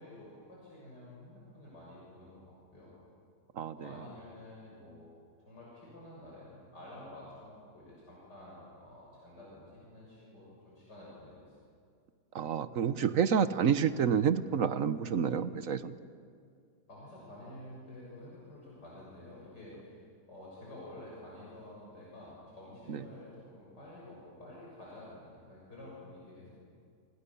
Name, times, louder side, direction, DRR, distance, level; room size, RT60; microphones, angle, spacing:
voice 1, 0.0-2.9 3.7-5.1 5.5-11.6 16.9-20.0 20.3-26.5, left 1 dB, 85° left, -5 dB, 7.6 m, -50 dB
voice 2, 3.6-3.9 12.3-15.9 22.9-23.0, right 7 dB, 60° right, 12 dB, 1.2 m, -29 dB
30.0 x 27.0 x 7.1 m, 2.3 s
omnidirectional pair, 1.8 m